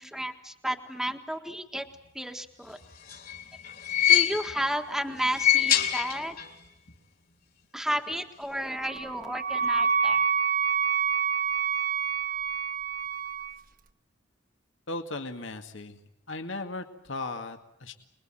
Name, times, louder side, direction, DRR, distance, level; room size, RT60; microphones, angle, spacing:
voice 1, 0.0-1.8 2.1-2.8 4.1-6.3 7.7-10.2, equal, ahead, 4 dB, 1.6 m, -32 dB
sound 1, 2.8-4.7 5.2-6.6 6.9-7.0 8.1-8.2, left 10 dB, 50° left, 3.1 m, -25 dB
Wind instrument woodwind instrument, 8.8-13.6, right 6 dB, 45° right, 1.1 m, -27 dB
voice 2, 14.9-16.0 16.3-17.9, left 2 dB, 70° left, 5 dB, 2.1 m, -37 dB
27.5 x 21.5 x 9.0 m, 0.78 s
head